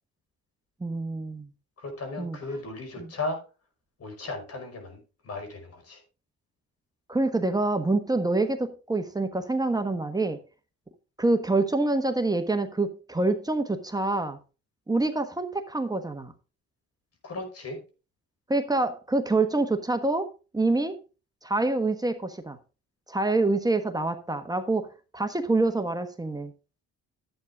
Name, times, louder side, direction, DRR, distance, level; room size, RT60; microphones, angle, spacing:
voice 1, 0.8-1.5 2.2-2.4 3.0-3.1 7.1-10.4 11.2-14.4 14.9-16.3 18.5-20.3 20.5-21.0 21.4-22.6 23.1-24.9 25.1-26.5, right 2 dB, 15° right, 1.3 m, -26 dB
voice 2, 1.8-3.4 4.0-6.0 17.2-17.8, left 2 dB, 55° left, 5.5 m, -36 dB
11.5 x 8.6 x 3.6 m
cardioid pair, 90°, 30 cm